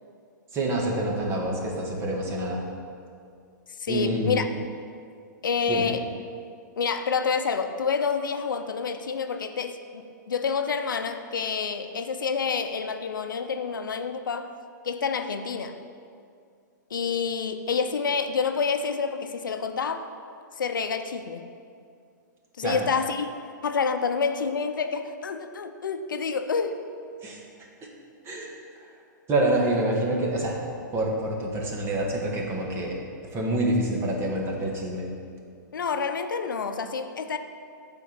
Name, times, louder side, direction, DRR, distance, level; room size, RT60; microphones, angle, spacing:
voice 1, 0.5-2.6 3.9-4.4 5.7-5.9 22.6-22.9 27.2-27.4 27.8-27.9 28.2-28.5 28.8-28.9 29.3-30.6 30.9-33.0 33.3-35.1, right 1 dB, 25° right, -1 dB, 1.6 m, -27 dB
voice 2, 3.8-4.5 5.4-6.1 6.8-14.5 14.8-15.8 16.9-20.1 20.6-21.5 22.6-23.4 23.6-26.8 35.7-37.4, left 5 dB, 90° left, 8 dB, 0.7 m, -28 dB
9.3 x 4.5 x 6.7 m, 2.3 s
hypercardioid pair, 130°, 10 cm